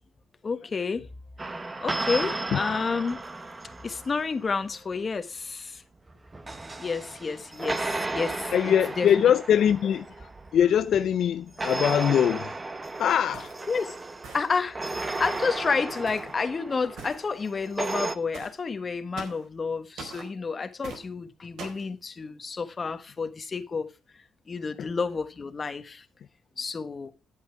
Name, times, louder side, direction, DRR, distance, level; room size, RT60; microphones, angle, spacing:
voice 1, 0.4-1.1 1.8-3.5 3.8-5.8 6.8-9.1 13.7-13.9 14.3-23.9 24.5-26.0 26.6-27.1, left 4 dB, 35° left, 1.3 m, -30 dB
sound 1, 1.4-4.6 6.1-11.0 11.6-18.2, right 2 dB, 20° right, 1.0 m, -34 dB
voice 2, 8.5-12.6 13.0-13.5 24.8-24.9, left 9 dB, 65° left, 0.5 m, -23 dB
sound 2, 13.3-13.7 14.2-14.7 15.2-15.5 16.1-16.4 17.0-17.2 18.3-18.6 19.2-19.5 20.0-20.3 20.8-21.0 21.6-21.9, right 4 dB, 75° right, 4.1 m, -42 dB
10.5 x 8.3 x 4.6 m
cardioid pair, 90°, 0 cm